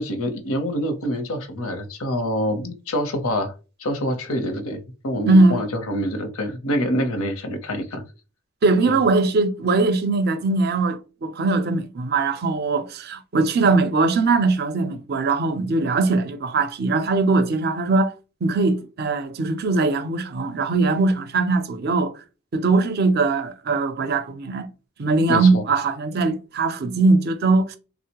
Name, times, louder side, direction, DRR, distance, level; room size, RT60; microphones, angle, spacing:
voice 1, 0.0-3.5 3.8-8.0 8.9-9.0 25.3-25.6, equal, 85° left, 0.7 m, -26 dB
voice 2, 5.3-5.6 8.6-18.1 18.4-22.2 22.5-24.7 25.0-27.8, right 3 dB, 50° right, 0.4 m, -20 dB
3.6 x 2.0 x 2.8 m
head